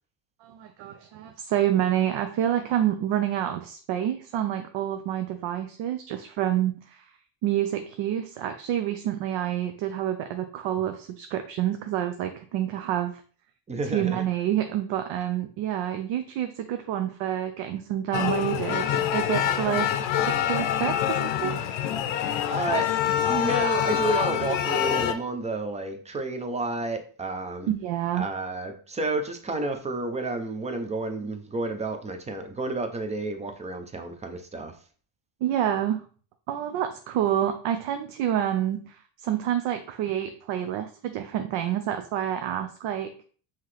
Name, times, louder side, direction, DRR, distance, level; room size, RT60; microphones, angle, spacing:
voice 1, 0.4-7.1 7.4-13.2 13.9-21.6 27.7-28.3 35.4-36.0 36.5-43.1, right 11 dB, 70° right, 7 dB, 0.6 m, -28 dB
voice 2, 13.7-14.2 22.5-23.0 23.3-27.7 28.1-34.7, right 2 dB, 15° right, 6 dB, 0.4 m, -30 dB
sound 1, 18.1-25.1, left 10 dB, 65° left, 0.6 m, -26 dB
5.6 x 2.9 x 3.1 m, 0.43 s
cardioid pair, 140°, 50 cm